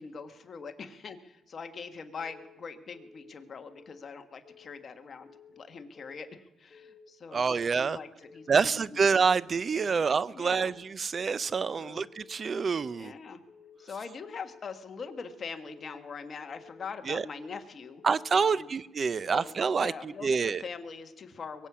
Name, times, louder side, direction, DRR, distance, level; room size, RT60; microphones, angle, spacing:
voice 1, 0.0-9.1 9.8-10.7 11.8-12.1 13.0-13.4 13.8-18.0 18.4-18.7 19.1-21.7, left 5 dB, 45° left, 1.5 m, -43 dB
Keyboard (musical) / Alarm, 2.2-2.6 2.9-3.3 3.7-4.1 4.4-4.8 5.2-5.6 6.0-6.3 6.7-7.1 7.5-7.8 8.2-8.6 9.0-9.3 9.7-10.1 10.5-10.8 11.2-11.6 12.0-12.3 12.7-13.1 13.5-13.9 14.2-14.6 15.0-15.4 15.7-16.1 16.5-16.9 17.2-17.6 18.0-18.4, left 4 dB, 30° left, 4.4 m, -55 dB
voice 2, 7.3-8.0 8.5-13.1 17.1-17.2 18.0-20.6, right 5 dB, 40° right, 0.5 m, -27 dB
22.5 x 8.4 x 6.2 m
cardioid pair, 90°, 0 cm